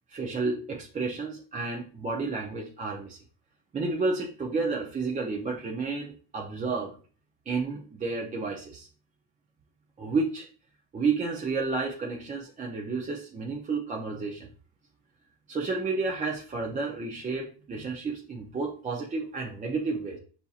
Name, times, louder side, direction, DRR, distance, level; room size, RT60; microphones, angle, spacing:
voice 1, 0.1-3.2 3.7-6.9 7.5-8.9 10.0-10.5 10.9-14.5 15.5-20.2, right 4 dB, 20° right, -1 dB, 0.4 m, -31 dB
6.8 x 2.7 x 2.3 m, 0.40 s
cardioid pair, 130°, 48 cm